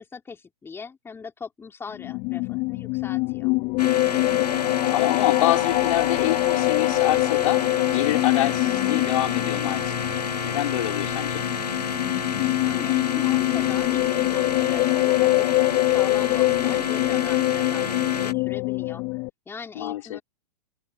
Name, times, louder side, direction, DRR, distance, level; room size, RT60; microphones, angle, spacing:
voice 1, 0.0-3.5 12.6-19.0 19.5-20.2, left 5 dB, 10° left, 3.4 m, -40 dB
sound 1, 1.9-19.3, left 26 dB, 35° left, 2.1 m, -24 dB
sound 2, 3.8-18.3, left 5 dB, 80° left, 1.7 m, -30 dB
voice 2, 4.9-7.6 7.9-9.9 10.4-11.4 19.8-20.2, left 14 dB, 55° left, 4.5 m, -26 dB
figure-of-eight pair, 115°, 20 cm